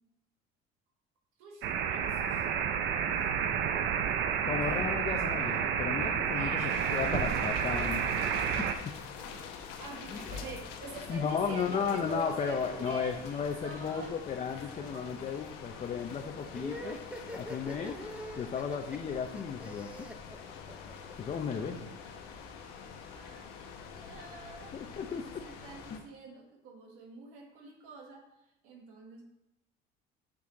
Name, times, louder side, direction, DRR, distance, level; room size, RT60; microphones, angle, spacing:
voice 1, 1.4-2.5 3.4-3.9 4.4-4.9 5.9-6.8 9.8-14.2 14.7-16.0 23.1-24.7 25.1-28.2 28.6-29.2, right 4 dB, 90° right, 1 dB, 1.5 m, -47 dB
sound 1, 1.6-8.7, right 7 dB, 60° right, 0.6 m, -30 dB
voice 2, 4.4-8.1 8.5-8.9 10.1-10.2 11.1-17.0 17.3-18.0 18.3-20.1 21.2-21.9 24.7-25.4 25.9-26.0, left 6 dB, 30° left, 4 dB, 0.6 m, -34 dB
sound 2, 6.7-26.0, left 6 dB, 90° left, 1.0 m, -45 dB
sound 3, 16.5-21.1, equal, 5° right, 0.8 m, -43 dB
6.2 x 6.0 x 3.8 m, 0.89 s
cardioid pair, 130°, 21 cm